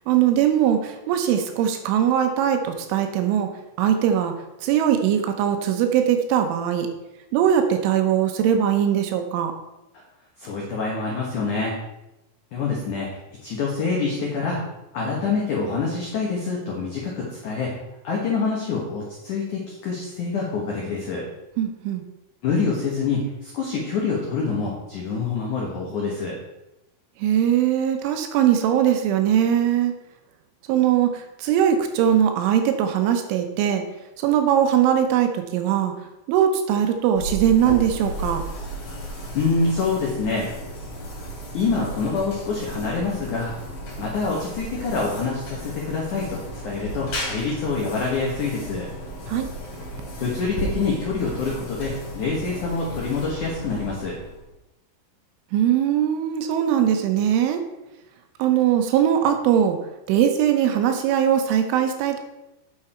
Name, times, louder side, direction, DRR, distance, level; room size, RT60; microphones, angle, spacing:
voice 1, 0.1-3.5 3.8-4.3 4.6-6.9 7.3-9.5 21.6-22.0 27.2-29.9 30.7-33.8 34.2-35.9 36.3-38.4 49.3-49.5 55.5-57.6 58.4-59.8 60.1-62.2, right 9 dB, 80° right, 6 dB, 3.1 m, -20 dB
voice 2, 10.4-11.7 12.5-13.1 13.4-14.6 14.9-17.7 18.0-21.2 22.4-26.4 39.3-40.5 41.5-43.5 44.0-48.9 50.2-54.2, left 4 dB, 80° left, -3 dB, 1.8 m, -26 dB
sound 1, 37.2-54.5, right 1 dB, 45° left, 3.8 m, -34 dB
9.5 x 6.8 x 4.4 m, 0.94 s
omnidirectional pair, 5.8 m